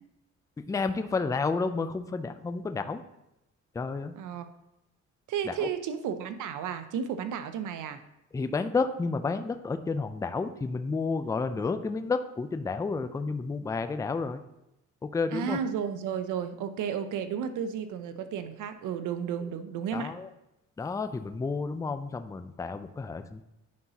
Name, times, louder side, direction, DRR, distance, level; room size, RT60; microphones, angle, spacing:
voice 1, 0.7-3.0 3.7-4.2 5.4-5.7 8.3-14.4 15.0-15.6 19.9-20.3 20.8-23.4, left 4 dB, 10° left, 9 dB, 0.4 m, -31 dB
voice 2, 4.2-4.5 5.3-8.0 15.3-20.1, right 7 dB, 80° right, 10 dB, 0.7 m, -33 dB
9.5 x 5.5 x 2.9 m, 0.88 s
cardioid pair, 90°, 30 cm